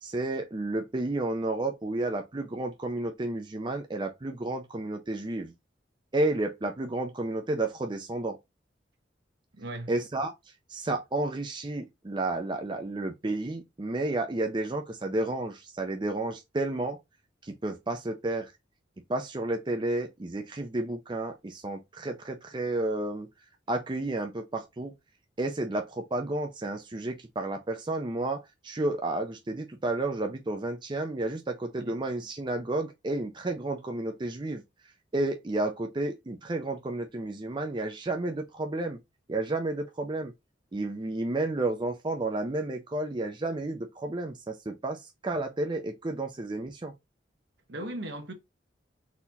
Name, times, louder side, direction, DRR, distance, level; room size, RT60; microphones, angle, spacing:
voice 1, 0.0-5.5 6.1-8.4 9.9-10.3 10.7-17.0 17.4-18.5 19.1-23.3 23.7-24.9 25.4-34.6 35.1-39.0 39.3-40.3 40.7-46.9, right 2 dB, 25° right, 0.5 m, -31 dB
voice 2, 9.5-9.9 31.8-32.0 47.7-48.3, right 1 dB, 70° right, 1.2 m, -37 dB
4.1 x 2.9 x 4.1 m
head